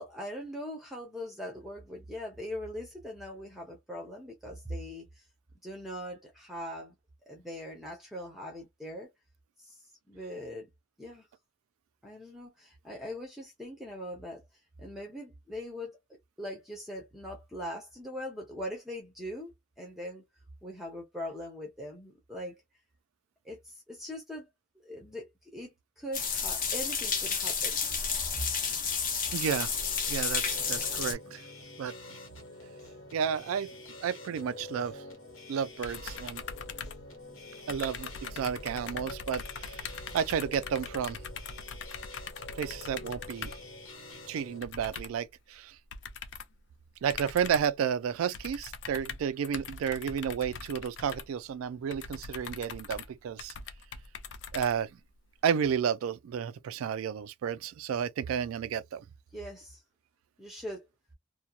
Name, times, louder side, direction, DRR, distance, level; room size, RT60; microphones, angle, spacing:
voice 1, 0.0-5.2 5.6-6.9 7.3-9.1 9.6-10.7 11.0-11.3 12.0-14.4 14.8-16.0 16.4-20.2 20.6-22.6 23.4-24.5 24.8-27.8 59.3-59.8 60.4-60.9, equal, ahead, 0.6 m, -41 dB
sound 1, 26.1-31.1, left 6 dB, 40° left, 0.8 m, -31 dB
sound 2, 29.3-44.6, left 2 dB, 75° left, 1.2 m, -47 dB
voice 2, 29.3-29.7 30.1-31.4 31.8-31.9 33.1-33.7 34.0-35.0 35.5-36.4 37.7-41.2 42.5-43.5 44.3-45.8 47.0-53.5 54.5-54.9 55.4-59.0, right 8 dB, 90° right, 0.3 m, -32 dB
sound 3, 35.8-37.4 37.7-43.7 44.6-45.3 45.9-46.6 47.1-47.8 48.3-55.2, left 5 dB, 60° left, 0.4 m, -42 dB
2.8 x 2.1 x 2.3 m
head